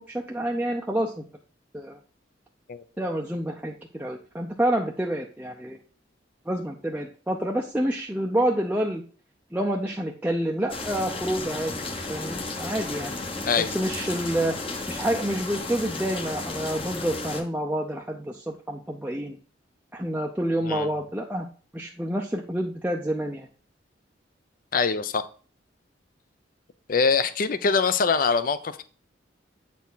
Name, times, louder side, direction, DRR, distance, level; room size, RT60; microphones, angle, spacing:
voice 1, 0.1-1.2 1.7-2.0 3.0-5.8 6.5-9.0 9.5-13.1 13.6-14.6 14.9-19.4 19.9-21.5 21.7-23.5, right 1 dB, 10° right, 0 dB, 0.5 m, -28 dB
sound 1, 10.7-17.4, left 3 dB, 30° left, 0.8 m, -33 dB
voice 2, 13.5-13.8 20.7-20.9 24.7-25.2 26.9-28.8, left 5 dB, 50° left, 14 dB, 0.5 m, -23 dB
8.2 x 4.2 x 3.9 m, 0.41 s
head